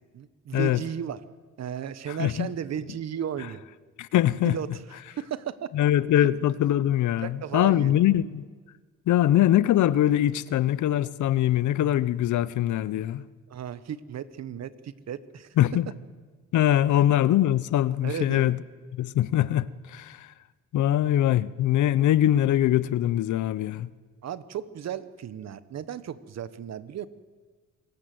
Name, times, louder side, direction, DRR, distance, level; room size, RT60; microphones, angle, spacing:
voice 1, 0.1-1.2 1.6-3.6 4.4-5.7 6.2-6.3 7.2-8.0 13.5-15.5 18.0-18.5 24.2-27.1, right 9 dB, 60° right, 1.3 m, -35 dB
voice 2, 4.0-4.6 5.7-8.4 9.1-13.2 15.6-15.9 16.5-18.6 18.9-20.3 20.7-23.9, left 12 dB, 75° left, 0.8 m, -22 dB
27.5 x 19.0 x 7.9 m
cardioid pair, 90°, 30 cm